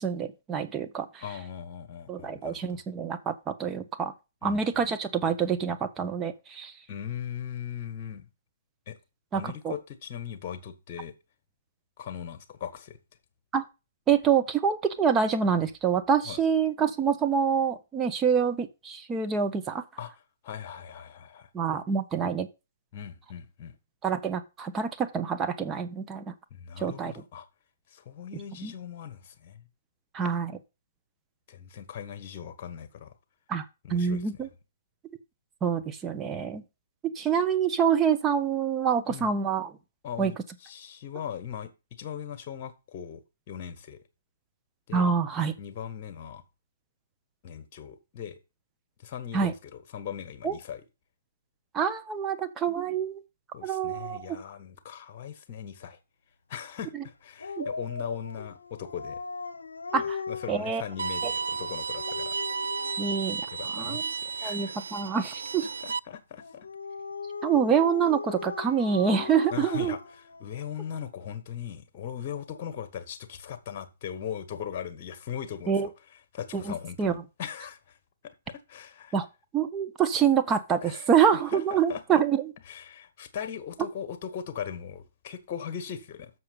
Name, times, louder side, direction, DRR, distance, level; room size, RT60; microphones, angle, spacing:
voice 1, 0.0-1.2 2.1-4.1 4.4-6.7 9.3-9.7 13.5-13.6 14.1-19.8 21.5-22.5 24.0-26.3 26.8-27.1 28.6-28.7 30.1-30.5 33.5-33.6 33.9-34.5 35.6-36.6 37.0-39.7 40.2-40.3 44.9-45.5 49.3-49.5 50.4-50.5 51.7-53.2 53.6-54.4 57.6-57.7 59.9-60.2 60.5-60.8 61.2-61.3 63.0-63.4 63.7-64.0 64.4-65.7 67.4-70.0 75.7-75.9 76.5-77.2 79.1-79.3 79.5-82.5, right 7 dB, 15° right, 1.0 m, -26 dB
voice 2, 1.2-2.8 4.4-4.6 6.9-8.3 8.9-9.0 9.3-11.1 12.0-13.0 16.3-16.4 20.0-20.1 20.4-21.5 22.9-23.8 26.5-27.4 27.9-29.6 31.5-33.1 33.8-34.5 39.1-39.3 40.0-40.4 40.6-41.7 42.0-44.0 44.9-45.1 45.6-46.4 47.4-48.4 49.0-50.8 53.5-56.0 56.5-59.2 60.0-62.3 63.5-64.8 65.8-66.7 69.5-75.9 76.3-78.0 78.5-79.1 80.8-81.1 81.5-82.2 82.7-86.3, left 8 dB, 40° left, 1.5 m, -39 dB
Dog, 57.4-63.2 66.4-71.0, left 5 dB, 75° left, 0.8 m, -39 dB
Bowed string instrument, 61.0-66.0, right 5 dB, 70° right, 0.3 m, -33 dB
7.0 x 6.6 x 5.2 m
figure-of-eight pair, 125°, 0 cm